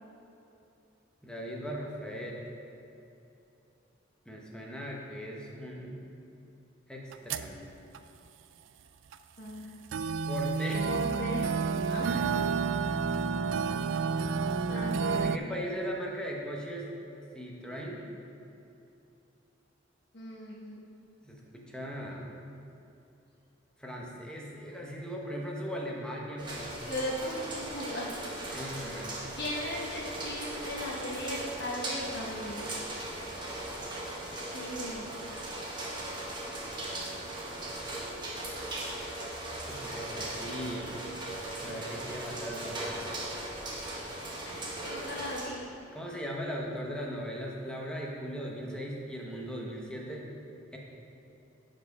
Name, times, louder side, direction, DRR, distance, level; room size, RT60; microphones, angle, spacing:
voice 1, 1.2-2.4 4.3-5.9 6.9-7.6 10.3-10.9 12.1-12.2 15.2-16.9 17.3-18.0 21.2-22.3 23.8-26.8 28.5-29.1 39.7-41.0 41.6-43.2 45.9-50.3 50.7-50.8, equal, 5° left, -2 dB, 0.9 m, -38 dB
sound 1, 7.1-7.5 7.9-8.0 9.1-9.2 9.9-15.4, right 5 dB, 70° right, 0.3 m, -30 dB
voice 2, 9.4-9.7 10.8-11.6 11.9-12.4 14.7-15.4 20.1-20.8 26.9-28.1 28.5-28.7 29.3-32.7 34.5-35.1 42.1-42.2 43.8-45.7, left 1 dB, 60° left, -5 dB, 1.1 m, -38 dB
sound 2, 26.4-45.5, right 1 dB, 25° right, 1.4 m, -38 dB
8.7 x 5.1 x 5.3 m, 2.7 s
head